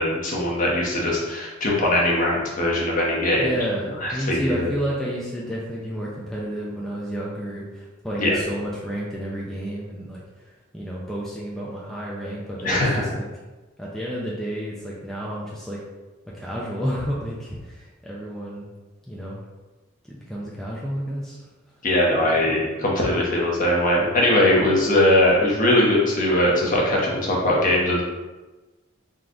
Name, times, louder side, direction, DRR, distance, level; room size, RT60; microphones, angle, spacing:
voice 1, 0.0-3.4 4.0-4.7 8.2-8.4 12.6-13.0 21.8-28.0, left 1 dB, 40° left, -3 dB, 1.0 m, -20 dB
voice 2, 3.3-13.3 13.8-15.8 16.3-18.7 19.1-19.4 20.1-21.5 22.1-22.6, equal, ahead, -6 dB, 0.5 m, -31 dB
3.9 x 3.1 x 3.8 m, 1.2 s
head